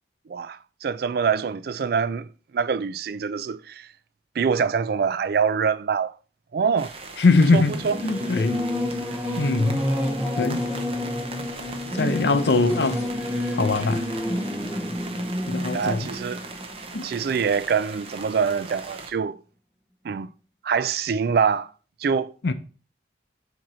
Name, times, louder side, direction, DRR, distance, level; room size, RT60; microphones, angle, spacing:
voice 1, 0.3-2.3 2.5-3.9 4.4-6.1 6.5-6.9 7.5-7.9 15.7-16.4 17.0-19.4 20.0-20.3 20.6-21.7 22.0-22.3, right 6 dB, 55° right, 0.3 m, -24 dB
sound 1, 6.8-19.1, right 3 dB, 30° right, 0.8 m, -40 dB
voice 2, 7.2-7.7 8.0-8.6 9.4-9.8 10.4-10.7 11.9-13.0 13.5-14.0 15.5-16.1 16.9-17.1 22.4-22.5, left 3 dB, 65° left, 0.6 m, -21 dB
Singing / Musical instrument, 7.5-17.6, left 1 dB, 5° right, 1.3 m, -29 dB
sound 2, 9.7-15.1, left 2 dB, 40° left, 1.3 m, -47 dB
7.5 x 3.0 x 5.5 m
head